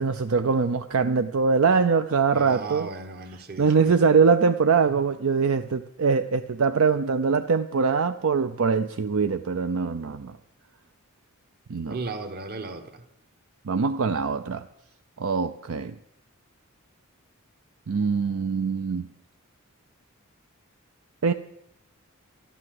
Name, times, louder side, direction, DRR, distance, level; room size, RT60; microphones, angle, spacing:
voice 1, 0.0-2.9 3.6-10.4 11.7-12.0 13.6-14.6 15.2-15.9 17.9-19.1 21.2-21.3, right 5 dB, 70° right, 9 dB, 0.5 m, -23 dB
voice 2, 2.3-3.9 4.9-5.0 11.9-13.0, right 3 dB, 45° right, 9 dB, 1.3 m, -36 dB
12.5 x 12.0 x 7.7 m, 0.85 s
head